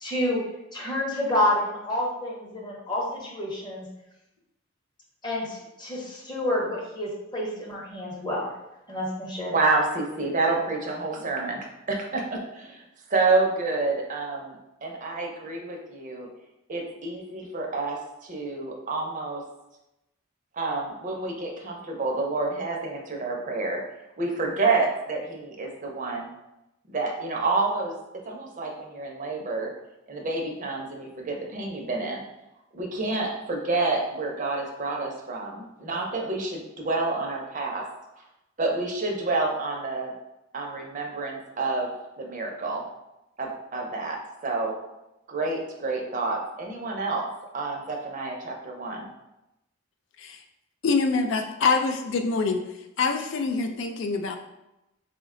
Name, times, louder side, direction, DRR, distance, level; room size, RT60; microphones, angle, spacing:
voice 1, 0.0-0.4 0.7-3.9 5.2-8.5 8.9-9.5, left 1 dB, 20° left, -3 dB, 0.8 m, -28 dB
voice 2, 9.5-12.8 13.1-16.3 16.7-19.4 20.5-23.8 24.2-26.3 26.9-27.9 28.3-29.7 30.1-32.2 32.7-37.9 38.6-40.1 40.5-41.9 42.2-42.8 43.4-44.8 45.3-47.3 47.5-49.1, right 3 dB, 40° right, 1 dB, 0.5 m, -28 dB
voice 3, 50.8-52.6 53.0-54.4, left 4 dB, 60° left, 5 dB, 0.3 m, -25 dB
3.9 x 2.1 x 3.6 m, 0.91 s
head